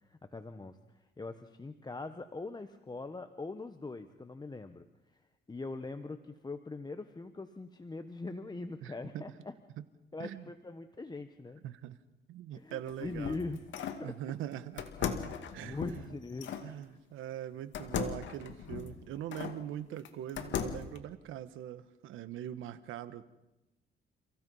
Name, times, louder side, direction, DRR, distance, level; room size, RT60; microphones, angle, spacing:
voice 1, 0.1-4.8 5.5-9.5 10.1-11.6 12.6-14.2 15.3-16.8, left 3 dB, 20° left, 8 dB, 1.2 m, -42 dB
voice 2, 8.8-9.2 9.8-9.9 10.2-10.5 11.6-12.0 12.3-13.4 14.0-15.1 15.5-16.2 16.6-23.2, right 11 dB, 90° right, 14 dB, 1.2 m, -42 dB
sound 1, 12.7-14.1 14.8-16.7 17.7-19.6 20.0-21.0, left 7 dB, 70° left, 2.2 m, -38 dB
30.0 x 16.0 x 5.6 m, 1.0 s
cardioid pair, 90°, 20 cm